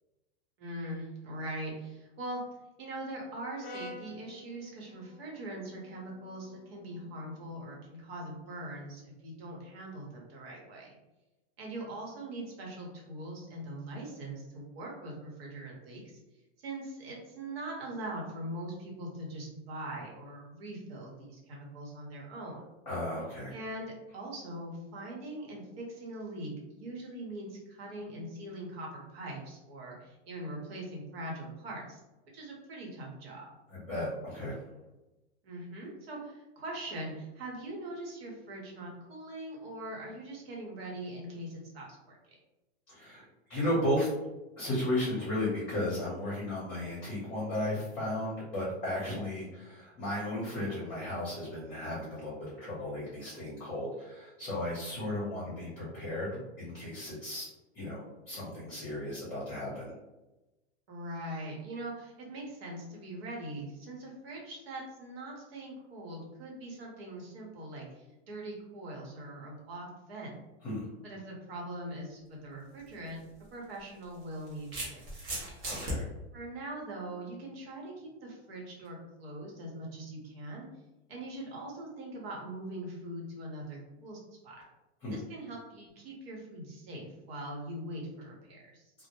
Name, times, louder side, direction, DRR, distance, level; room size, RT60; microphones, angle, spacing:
voice 1, 0.6-2.4 2.8-11.0 11.6-16.1 16.6-22.7 23.5-32.0 32.3-33.5 35.4-42.2 60.9-70.3 71.0-73.2 73.5-75.3 76.3-80.7 81.1-84.6 85.1-88.9, right 1 dB, 65° right, -2 dB, 1.0 m, -42 dB
Brass instrument, 3.6-7.8, left 2 dB, 55° left, 0.5 m, -50 dB
voice 2, 22.9-23.5 33.7-34.6 42.9-43.2 43.5-44.1 44.6-56.3 56.6-57.5 57.7-59.9 70.6-70.8 75.7-76.0 85.0-85.2, left 1 dB, 20° left, -8 dB, 0.8 m, -34 dB
sound 1, 72.8-72.9 74.0-76.0, equal, 15° right, 0.4 m, -37 dB
2.1 x 2.0 x 2.9 m, 1.0 s
supercardioid pair, 150°, 33 cm